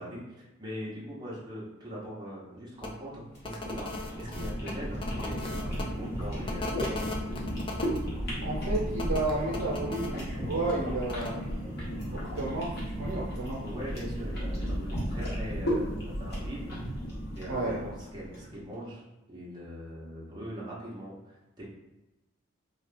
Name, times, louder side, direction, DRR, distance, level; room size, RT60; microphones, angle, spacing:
voice 1, 0.0-7.2 13.6-16.7 17.3-19.0 19.3-21.6, equal, 20° right, -7 dB, 0.8 m, -41 dB
sound 1, 2.8-2.9 3.4-5.8 6.5-8.0 9.0-10.1 11.1-11.3, left 2 dB, 25° left, 0.4 m, -38 dB
sound 2, 3.3-18.5, equal, 55° left, 1.2 m, -34 dB
voice 2, 8.4-11.7 12.1-13.6 17.5-17.8, right 2 dB, 75° right, -7 dB, 0.7 m, -32 dB
2.8 x 2.4 x 3.3 m, 1.0 s
head